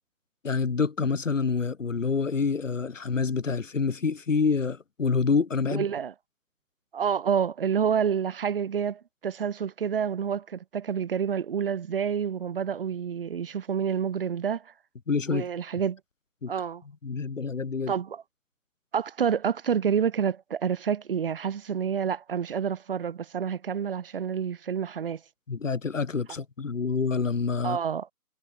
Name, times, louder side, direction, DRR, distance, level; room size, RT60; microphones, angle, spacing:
voice 1, 0.4-5.9 15.1-15.5 16.4-16.5 17.0-17.9 25.5-27.8, left 5 dB, 55° left, 7.0 m, -27 dB
voice 2, 5.7-6.1 6.9-14.6 15.3-16.0 16.5-16.8 17.9-18.2 18.9-25.2 27.6-28.1, right 7 dB, 35° right, 7.9 m, -28 dB
figure-of-eight pair, 160°, 46 cm